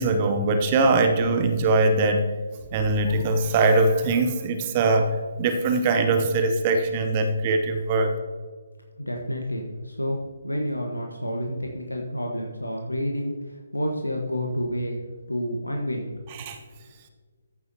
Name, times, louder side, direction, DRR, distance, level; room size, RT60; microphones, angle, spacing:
voice 1, 0.0-2.3 2.7-8.1 16.4-16.6, right 3 dB, 30° right, 7 dB, 0.8 m, -22 dB
voice 2, 9.0-15.0 15.3-16.1, equal, 85° left, 1 dB, 1.3 m, -29 dB
14.5 x 7.0 x 2.8 m, 1.5 s
figure-of-eight pair, 140°, 0 cm